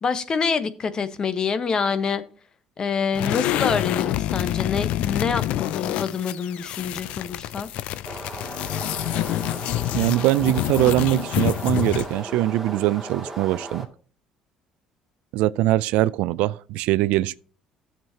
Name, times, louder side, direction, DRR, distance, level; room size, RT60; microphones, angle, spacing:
voice 1, 0.0-2.2 2.8-7.7, left 5 dB, 40° left, 1.1 m, -26 dB
sound 1, 3.1-12.2, left 14 dB, 75° left, 0.4 m, -27 dB
sound 2, 8.0-13.9, right 2 dB, 10° right, 2.3 m, -36 dB
voice 2, 9.9-13.9 15.3-17.4, right 16 dB, 80° right, 0.4 m, -22 dB
12.5 x 7.2 x 2.8 m
supercardioid pair, 95°, 2 cm